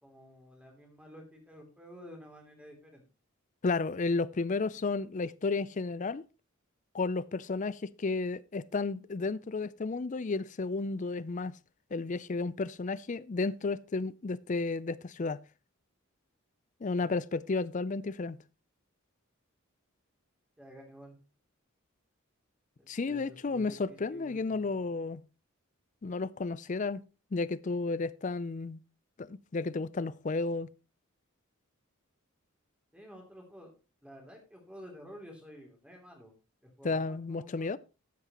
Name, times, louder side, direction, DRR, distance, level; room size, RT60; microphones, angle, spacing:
voice 1, 0.0-3.0 17.0-17.1 20.6-21.2 22.8-24.8 32.9-33.7 34.0-36.3 36.6-37.7, equal, 5° right, 2.9 m, -51 dB
voice 2, 3.6-6.2 6.9-11.5 11.9-15.4 16.8-18.4 22.9-25.2 26.0-27.0 27.3-28.8 29.2-30.7 36.8-37.8, left 3 dB, 35° left, 0.4 m, -32 dB
13.0 x 9.5 x 3.0 m
head